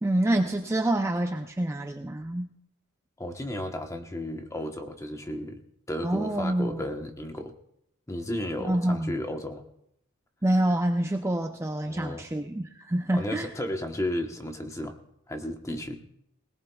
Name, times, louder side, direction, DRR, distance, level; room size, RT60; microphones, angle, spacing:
voice 1, 0.0-2.5 6.0-6.8 8.6-9.1 10.4-13.5, right 1 dB, 15° right, 4 dB, 0.5 m, -27 dB
voice 2, 3.2-5.6 5.9-7.5 8.1-9.6 11.9-12.3 13.1-14.9 15.3-16.0, left 1 dB, 15° left, 5 dB, 1.0 m, -33 dB
20.5 x 19.0 x 2.3 m, 0.78 s
head